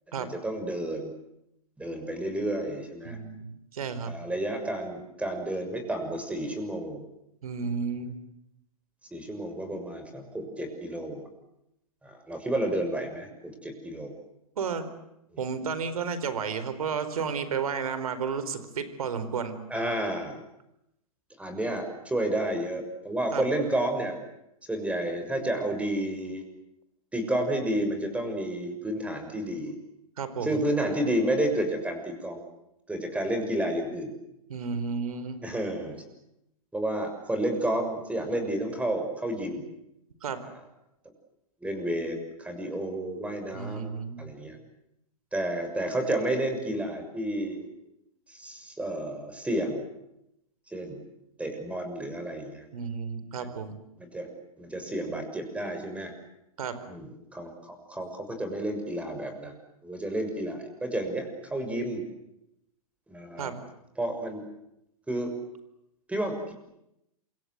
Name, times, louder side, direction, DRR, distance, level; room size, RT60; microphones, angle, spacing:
voice 1, 0.2-1.1 1.8-3.2 4.0-7.0 9.1-11.3 12.0-14.1 19.7-20.4 21.4-24.2 24.7-26.4 27.1-29.7 30.4-32.4 32.9-34.1 35.4-36.0 36.7-39.6 41.6-43.9 44.2-44.6 45.3-47.7 48.3-49.8 50.7-51.0 51.4-52.6 53.4-53.5 54.0-54.3 54.6-56.1 56.9-59.5 59.8-62.0 63.1-63.5 64.0-64.4 65.1-65.3 66.1-66.5, right 1 dB, 5° right, 6 dB, 6.6 m, -31 dB
voice 2, 3.0-4.1 7.4-8.2 14.6-14.9 15.4-19.6 23.3-23.5 30.2-30.6 34.5-35.4 40.2-40.4 43.5-44.3 52.7-53.8 56.6-56.8 63.4-63.6, right 6 dB, 75° right, 12 dB, 4.5 m, -32 dB
27.5 x 25.0 x 8.1 m, 0.83 s
hypercardioid pair, 115°, 19 cm